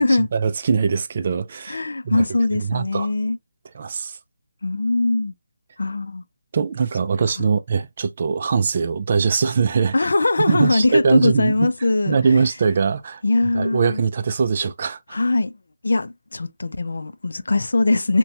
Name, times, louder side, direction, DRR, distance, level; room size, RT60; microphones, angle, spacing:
voice 1, 0.3-2.2 2.5-3.1 3.7-4.2 6.5-9.9 10.5-11.7 12.1-13.2 13.5-15.2, right 5 dB, 45° right, 0.3 m, -22 dB
voice 2, 1.7-3.4 4.6-5.3 5.8-6.2 7.4-7.6 9.9-12.2 13.2-14.0 15.1-15.5 15.8-18.2, left 2 dB, 80° left, 0.4 m, -21 dB
2.9 x 2.2 x 2.5 m
figure-of-eight pair, 165°, 0 cm